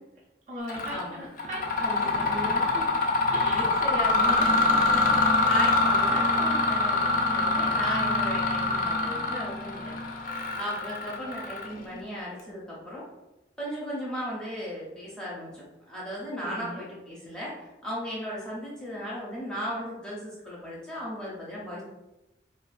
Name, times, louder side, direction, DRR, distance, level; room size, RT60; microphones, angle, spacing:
voice 1, 0.5-3.0 3.3-3.9 4.2-5.4 16.4-16.9, equal, 40° right, -4 dB, 0.5 m, -38 dB
Mechanisms, 0.7-1.0 1.4-11.9, left 2 dB, 50° left, 0.4 m, -25 dB
voice 2, 3.5-4.4 5.4-13.0 13.6-21.8, equal, 5° left, -7 dB, 0.6 m, -36 dB
2.4 x 2.3 x 2.4 m, 0.95 s
head